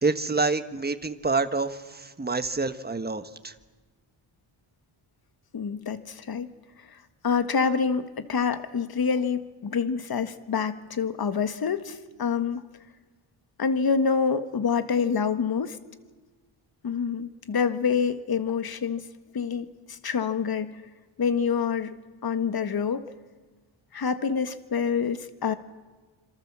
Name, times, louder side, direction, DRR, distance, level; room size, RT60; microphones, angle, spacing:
voice 1, 0.0-3.5, right 3 dB, 20° right, 10 dB, 1.4 m, -27 dB
voice 2, 5.5-6.5 6.9-7.0 7.2-12.6 13.6-15.8 16.8-19.1 19.3-20.8 21.2-23.1 23.9-25.5, left 6 dB, 50° left, 11 dB, 1.6 m, -27 dB
27.0 x 26.5 x 7.5 m, 1.4 s
wide cardioid pair, 150°, 49 cm